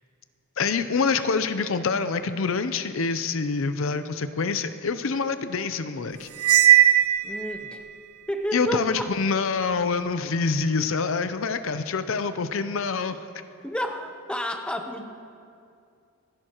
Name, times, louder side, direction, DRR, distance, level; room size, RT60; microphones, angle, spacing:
voice 1, 0.6-6.3 8.5-13.2, left 4 dB, 65° left, 11 dB, 0.6 m, -26 dB
Cymbal, 6.4-7.8, right 12 dB, 90° right, 0.6 m, -18 dB
voice 2, 7.2-7.8 8.3-9.1 13.6-15.1, equal, 5° left, 4 dB, 0.8 m, -30 dB
26.5 x 11.0 x 3.0 m, 2.4 s
head